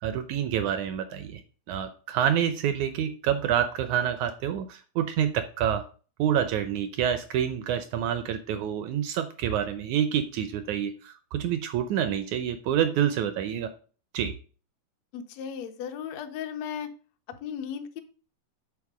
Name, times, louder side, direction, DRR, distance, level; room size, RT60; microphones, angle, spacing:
voice 1, 0.0-1.4 1.7-5.8 6.2-13.7 14.1-14.3, right 9 dB, 80° right, 9 dB, 1.7 m, -27 dB
voice 2, 15.1-16.9 17.3-18.0, left 8 dB, 75° left, 5 dB, 1.6 m, -36 dB
8.5 x 4.3 x 6.0 m, 0.38 s
omnidirectional pair, 4.1 m